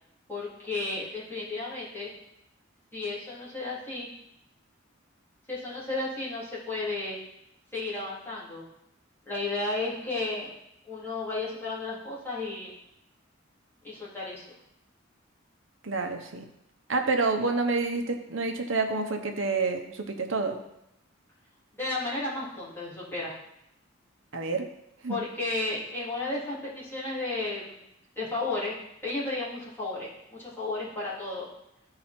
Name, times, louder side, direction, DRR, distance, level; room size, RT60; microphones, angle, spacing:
voice 1, 0.3-2.1 2.9-4.1 5.5-7.2 7.7-8.6 9.2-10.5 10.9-12.7 13.8-14.5 21.7-23.4 25.1-27.8 28.1-28.8 29.0-31.5, left 2 dB, 10° left, -9 dB, 3.2 m, -33 dB
voice 2, 15.8-16.4 16.9-20.6 24.3-24.7 25.0-25.2, right 3 dB, 70° right, 5 dB, 1.0 m, -28 dB
13.5 x 4.8 x 4.4 m, 0.83 s
head